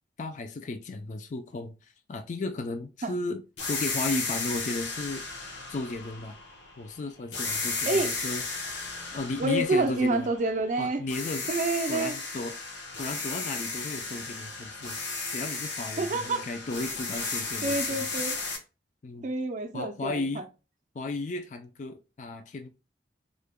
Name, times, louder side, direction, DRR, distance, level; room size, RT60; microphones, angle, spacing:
voice 1, 0.2-1.7 2.1-3.4 3.7-5.3 5.7-6.4 6.8-8.4 9.1-10.3 10.8-11.5 11.9-12.6 13.0-15.0 15.3-18.0 19.0-19.3 19.7-20.4 20.9-22.7, left 2 dB, 45° left, 0.4 m, -34 dB
sound 1, 3.6-6.9 7.3-10.7 11.1-18.6, left 3 dB, 80° left, 1.1 m, -34 dB
voice 2, 9.4-11.0 11.5-12.1 16.0-16.4 17.6-18.4 19.2-20.4, right 2 dB, 45° right, 0.4 m, -28 dB
3.7 x 2.2 x 3.4 m
head